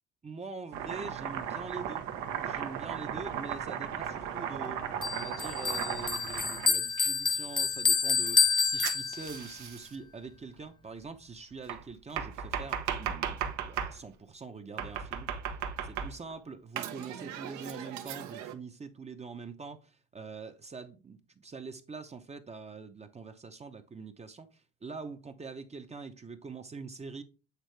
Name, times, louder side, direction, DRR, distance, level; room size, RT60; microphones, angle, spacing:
voice 1, 0.2-2.1 2.4-15.3 15.8-27.2, right 4 dB, 20° right, 0.7 m, -44 dB
Domestic sounds home sounds, 0.7-7.1 8.8-9.9 11.7-14.0 14.8-16.3 16.8-18.5, right 8 dB, 80° right, 0.9 m, -36 dB
Bell, 5.0-9.5, left 6 dB, 15° left, 0.4 m, -28 dB
8.2 x 3.6 x 3.3 m
cardioid pair, 105°, 29 cm